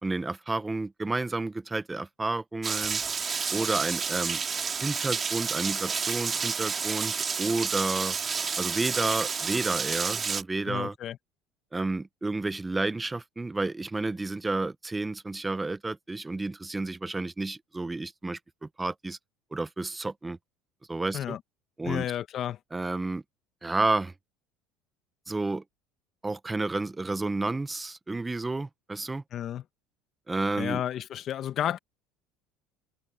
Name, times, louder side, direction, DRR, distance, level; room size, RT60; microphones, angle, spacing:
voice 1, 0.0-3.0 3.5-4.4 4.8-8.2 8.6-11.0 11.7-19.2 19.5-20.4 20.9-21.4 21.8-22.1 22.7-23.2 23.6-24.1 25.3-25.6 26.2-29.2 30.3-30.8, right 2 dB, 15° right, 0.6 m, -31 dB
Rain, 2.6-10.4, right 6 dB, 30° right, 2.2 m, -30 dB
voice 2, 10.6-11.2 21.1-21.4 21.8-22.6 29.3-29.6 30.6-31.8, left 11 dB, 45° left, 1.0 m, -31 dB
supercardioid pair, 110°, 0 cm